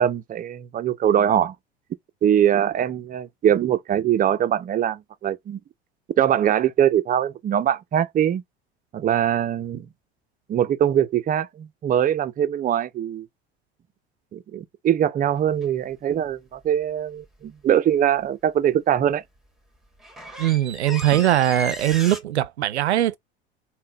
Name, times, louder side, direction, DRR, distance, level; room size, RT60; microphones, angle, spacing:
voice 1, 0.0-1.5 2.2-5.6 6.2-8.4 8.9-9.9 10.5-13.3 14.3-19.2, right 10 dB, 25° right, 0.5 m, -22 dB
sound 1, 15.6-15.8 19.4-19.5 19.7-22.2, equal, ahead, 1.3 m, -35 dB
voice 2, 20.4-23.2, right 13 dB, 90° right, 0.5 m, -21 dB
3.7 x 2.2 x 3.8 m
hypercardioid pair, 75°, 32 cm